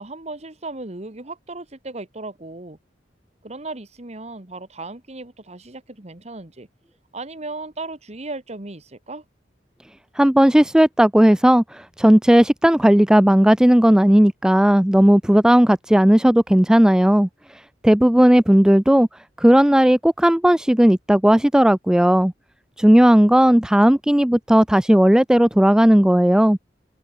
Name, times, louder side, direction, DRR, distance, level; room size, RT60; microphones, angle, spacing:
voice 1, 0.0-2.8 3.4-6.7 7.1-9.2, right 2 dB, 40° right, 1.8 m, -36 dB
voice 2, 10.2-17.3 17.8-19.1 19.4-22.3 22.8-26.6, equal, 5° right, 0.3 m, -15 dB
head